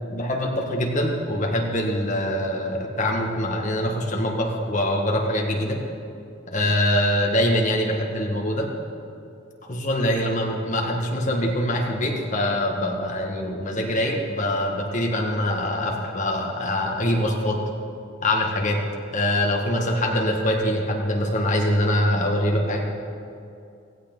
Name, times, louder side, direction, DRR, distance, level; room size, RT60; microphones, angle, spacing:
voice 1, 0.1-5.8 6.5-8.7 9.7-17.6 18.2-18.8 19.1-22.8, left 1 dB, 40° left, 0 dB, 2.0 m, -24 dB
16.5 x 16.5 x 4.0 m, 2.5 s
head